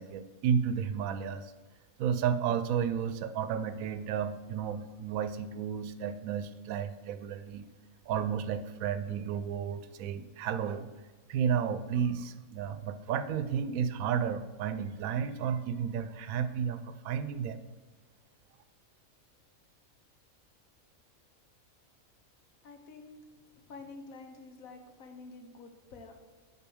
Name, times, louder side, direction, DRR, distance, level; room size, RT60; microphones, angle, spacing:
voice 1, 0.0-1.5 2.0-7.7 8.1-10.9 11.3-17.7, right 7 dB, 80° right, 11 dB, 1.0 m, -32 dB
voice 2, 22.6-23.2 23.5-26.1, left 3 dB, 80° left, 5 dB, 1.4 m, -49 dB
7.0 x 4.3 x 6.1 m, 1.3 s
omnidirectional pair, 1.4 m